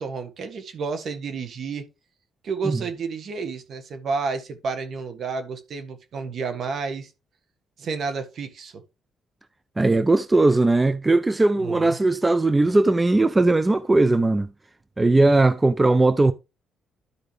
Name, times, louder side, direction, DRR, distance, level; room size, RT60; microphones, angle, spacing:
voice 1, 0.0-1.8 2.4-7.1 7.8-8.8 11.6-12.0, right 5 dB, 60° right, 1.6 m, -30 dB
voice 2, 9.8-14.5 15.0-16.3, right 2 dB, 20° right, 0.5 m, -19 dB
12.5 x 5.0 x 3.2 m
cardioid pair, 90°, 0 cm